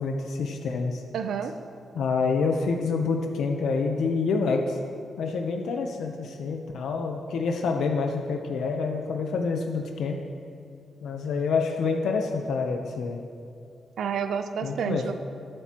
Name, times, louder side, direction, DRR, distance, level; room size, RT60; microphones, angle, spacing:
voice 1, 0.0-1.0 1.9-4.8 5.2-10.2 11.0-13.2 14.6-15.1, left 4 dB, 90° left, 3 dB, 0.8 m, -27 dB
voice 2, 1.1-1.6 14.0-15.1, right 7 dB, 85° right, 8 dB, 0.6 m, -29 dB
20.0 x 7.9 x 3.0 m, 2.3 s
wide cardioid pair, 145°, 0 cm